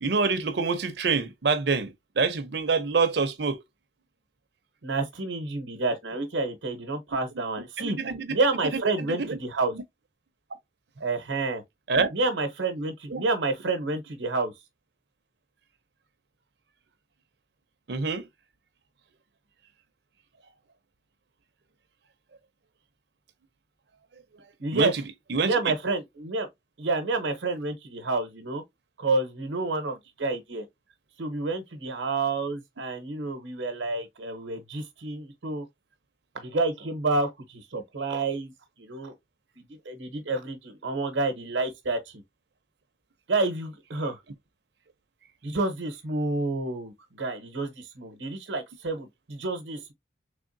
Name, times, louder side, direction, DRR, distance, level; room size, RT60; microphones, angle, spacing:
voice 1, 0.0-3.6 7.8-8.3 8.7-9.4 9.7-9.8 11.9-12.1 13.1-13.2 17.9-18.3 24.7-25.0 25.3-25.6, right 4 dB, 65° right, 0.6 m, -26 dB
voice 2, 4.8-8.0 8.3-9.7 11.0-11.6 12.1-14.5 24.6-24.9 25.4-26.5 26.8-28.6 29.0-30.7 31.2-35.6 36.3-38.5 38.8-39.1 39.5-42.2 43.3-44.2 45.4-49.9, right 3 dB, 90° right, 0.8 m, -29 dB
3.5 x 3.4 x 2.5 m
head